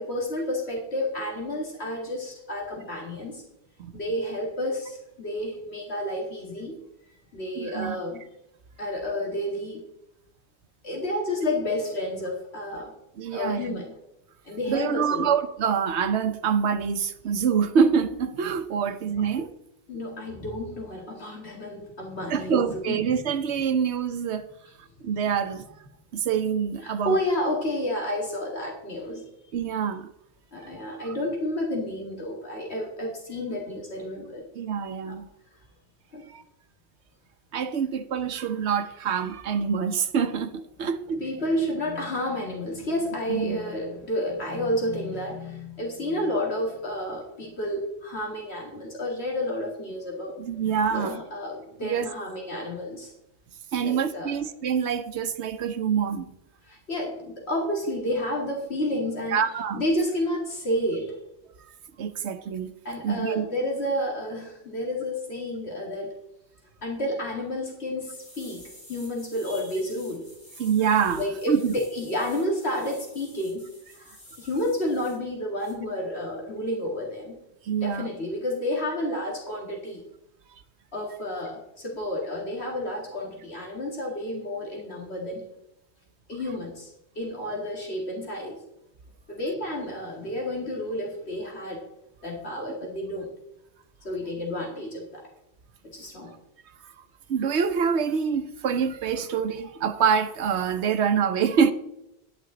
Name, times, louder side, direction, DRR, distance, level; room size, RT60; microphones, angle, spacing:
voice 1, 0.0-3.4 3.9-6.8 7.1-8.2 8.8-9.8 10.8-12.9 13.3-13.9 14.4-15.3 19.2-19.3 19.9-23.1 26.8-29.2 30.5-34.4 35.0-35.1 36.1-36.2 40.8-40.9 41.2-50.3 50.9-53.1 53.8-54.4 56.6-59.4 59.7-61.2 62.8-66.1 66.8-68.6 68.9-70.2 71.2-73.6 73.9-77.3 77.8-80.0 80.9-85.5 86.3-88.6 89.3-91.8 92.2-93.3 94.0-95.2 95.9-96.4, left 1 dB, 75° left, 2.3 m, -30 dB
voice 2, 7.6-8.0 13.2-13.8 14.7-19.5 22.3-24.5 25.0-25.6 26.1-27.2 29.5-30.1 34.5-35.3 36.3-36.4 37.5-41.2 43.3-43.6 50.4-51.2 51.8-52.1 53.7-56.3 59.3-59.8 62.0-62.7 63.0-63.5 70.6-71.8 77.6-78.1 96.8-96.9 97.3-101.7, right 7 dB, 85° right, 1.1 m, -26 dB
sound 1, 68.1-75.2 75.6-75.7, left 1 dB, 45° left, 4.0 m, -50 dB
11.5 x 10.0 x 3.8 m
omnidirectional pair, 1.1 m